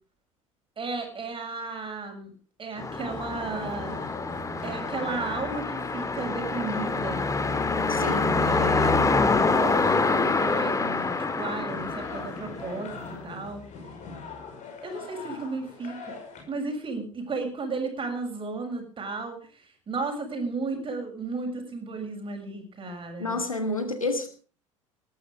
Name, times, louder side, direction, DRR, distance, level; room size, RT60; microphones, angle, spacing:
voice 1, 0.8-2.3 2.6-4.1 4.6-7.3 8.0-13.7 14.8-16.2 16.5-23.4, right 3 dB, 30° right, 4 dB, 7.0 m, -34 dB
sound 1, 2.8-13.0, left 3 dB, 20° left, 2.1 m, -26 dB
sound 2, 3.1-16.4, left 4 dB, 45° left, 5.8 m, -43 dB
voice 2, 7.9-8.3 23.2-24.3, left 2 dB, 90° left, 8 dB, 1.9 m, -29 dB
19.0 x 12.5 x 4.9 m, 0.39 s
figure-of-eight pair, 65°, 17 cm